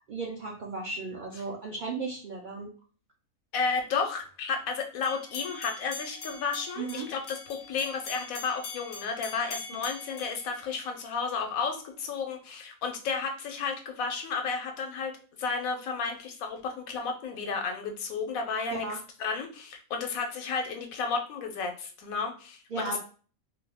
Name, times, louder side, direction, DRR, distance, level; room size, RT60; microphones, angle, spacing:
voice 1, 0.1-2.7 6.8-7.1 18.7-19.0 22.7-23.0, right 3 dB, 65° right, -1 dB, 0.4 m, -35 dB
voice 2, 3.5-15.1 15.4-18.8 19.2-23.0, left 5 dB, 80° left, 4 dB, 1.1 m, -32 dB
sound 1, 5.0-11.3, left 3 dB, 55° left, 0.8 m, -43 dB
2.6 x 2.3 x 3.4 m, 0.40 s
omnidirectional pair, 1.5 m